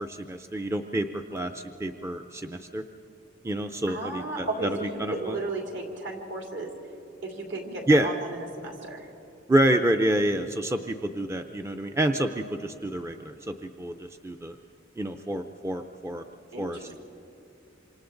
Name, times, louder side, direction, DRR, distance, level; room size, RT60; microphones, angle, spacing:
voice 1, 0.0-2.8 3.4-5.4 7.9-8.1 9.5-14.5 15.0-16.2 16.6-17.0, right 1 dB, 15° right, 6 dB, 0.5 m, -28 dB
voice 2, 3.9-6.7 7.2-9.1 16.5-17.0, right 2 dB, 65° right, 0 dB, 3.5 m, -34 dB
27.5 x 26.0 x 3.9 m, 2.8 s
head